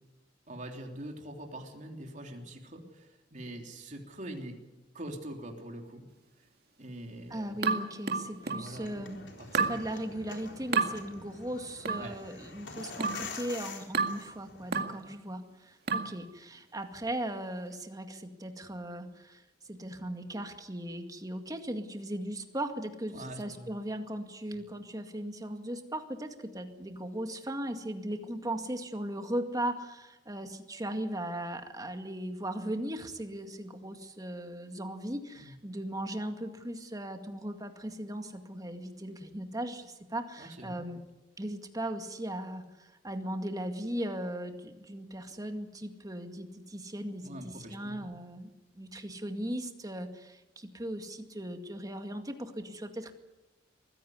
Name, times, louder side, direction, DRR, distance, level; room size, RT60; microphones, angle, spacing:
voice 1, 0.5-4.6 4.9-6.1 6.8-7.6 8.4-8.9 9.4-9.8 12.0-12.2 15.0-15.1 23.1-23.7 35.4-35.6 40.4-40.9 47.2-48.3, right 1 dB, 45° right, 2 dB, 3.4 m, -44 dB
voice 2, 7.3-9.2 9.5-19.4 19.7-41.0 41.4-48.5 48.8-53.1, right 1 dB, 20° right, 6 dB, 2.1 m, -38 dB
sound 1, 7.6-8.7 9.5-9.8 10.7-10.9 11.9-12.1 13.0-13.3 13.9-14.2 14.7-15.0 15.9-16.2, right 4 dB, 60° right, 2.1 m, -30 dB
sound 2, 8.6-14.7, left 4 dB, 90° left, 4.0 m, -46 dB
22.5 x 16.0 x 9.5 m, 1.1 s
head